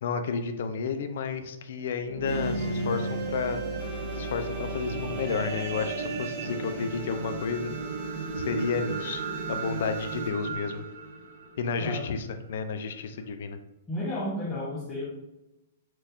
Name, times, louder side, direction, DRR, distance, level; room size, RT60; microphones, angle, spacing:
voice 1, 0.0-3.6 4.2-7.7 8.3-9.2 9.5-10.8 11.6-13.6, left 5 dB, 65° left, 9 dB, 0.5 m, -31 dB
sound 1, 1.8-12.3 12.9-13.0, right 3 dB, 75° right, 0.4 m, -34 dB
sound 2, 2.2-12.2, right 2 dB, 10° right, 1.1 m, -42 dB
voice 2, 13.9-15.0, left 1 dB, 10° left, -8 dB, 0.9 m, -32 dB
4.5 x 3.3 x 2.5 m, 0.95 s
hypercardioid pair, 160°, 0 cm